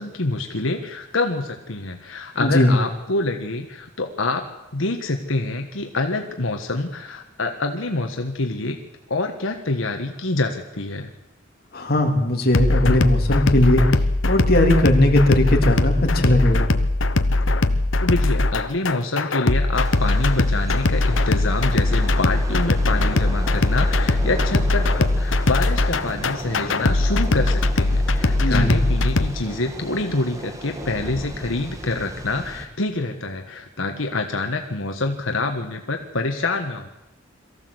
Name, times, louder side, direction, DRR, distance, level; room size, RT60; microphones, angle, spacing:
voice 1, 0.0-8.8 9.1-11.1 18.0-36.9, left 2 dB, 90° left, 4 dB, 1.5 m, -26 dB
voice 2, 2.4-2.7 11.7-13.8 14.2-16.7 28.4-28.8, left 1 dB, 50° left, 1 dB, 3.4 m, -18 dB
sound 1, 12.5-29.3, left 2 dB, 70° left, 1.1 m, -20 dB
Thunder / Rain, 19.7-32.7, right 1 dB, 15° right, 1.8 m, -36 dB
23.0 x 15.0 x 8.0 m, 0.99 s
head